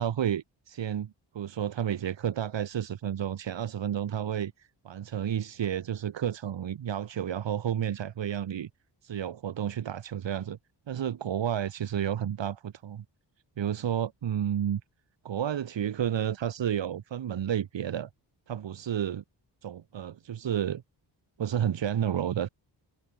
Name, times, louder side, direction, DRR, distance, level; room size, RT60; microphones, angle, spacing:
voice 1, 0.0-4.5 4.8-8.7 9.0-10.6 10.9-13.0 13.6-14.8 15.2-18.1 18.5-19.2 19.6-20.8 21.4-22.5, right 9 dB, 80° right, 2.9 m, -31 dB
wide cardioid pair, 180°, 44 cm